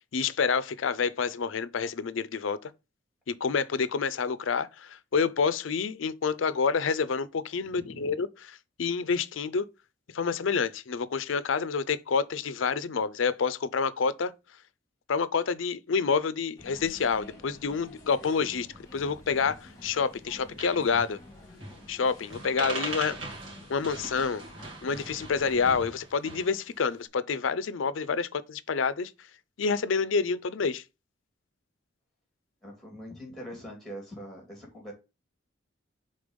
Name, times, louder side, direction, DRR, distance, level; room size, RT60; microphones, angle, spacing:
voice 1, 0.1-2.7 3.3-8.3 8.8-9.7 10.1-14.3 15.1-18.7 18.9-21.2 21.9-23.2 23.7-24.4 24.8-29.1 29.6-30.8, left 5 dB, 85° left, 0.5 m, -28 dB
voice 2, 7.6-8.1 32.6-34.9, equal, ahead, 2.8 m, -43 dB
sound 1, 16.6-25.7, left 1 dB, 20° left, 1.8 m, -50 dB
sound 2, 19.4-20.0 20.3-20.4 20.6-21.1 21.6-22.0 22.2-26.6, right 2 dB, 75° right, 2.2 m, -40 dB
5.2 x 3.9 x 5.1 m
head